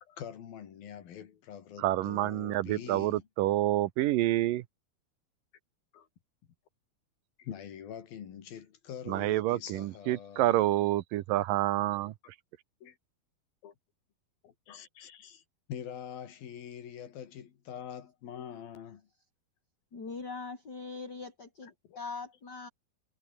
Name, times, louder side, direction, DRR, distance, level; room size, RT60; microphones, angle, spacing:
voice 1, 0.0-3.3 5.9-6.1 7.4-10.6 12.8-13.0 13.6-13.7 14.4-15.4 15.7-19.1 21.6-22.0, left 9 dB, 75° left, 4.2 m, -45 dB
voice 2, 1.8-4.6 9.1-12.1, right 15 dB, 75° right, 2.4 m, -28 dB
voice 3, 19.9-22.7, left 4 dB, 25° left, 4.4 m, -41 dB
omnidirectional pair, 4.2 m